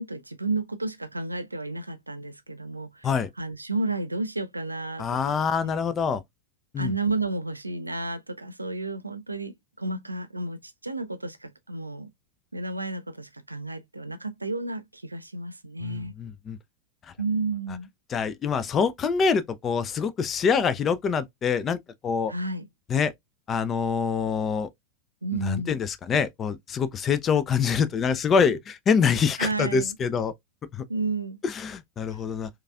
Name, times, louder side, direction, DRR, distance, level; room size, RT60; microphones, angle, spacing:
voice 1, 0.0-3.1 3.4-5.4 5.6-5.7 6.8-12.1 12.5-16.1 17.2-17.9 22.3-22.7 25.2-25.7 29.4-29.9 30.9-31.4, right 3 dB, 85° right, 0.4 m, -32 dB
voice 2, 5.0-6.2 6.7-6.9 15.8-16.6 18.1-22.3 22.9-23.1 23.5-24.7 25.4-30.3 30.7-30.8 31.4-32.5, left 6 dB, 25° left, 0.4 m, -25 dB
4.5 x 2.4 x 2.3 m
figure-of-eight pair, 90°, 0 cm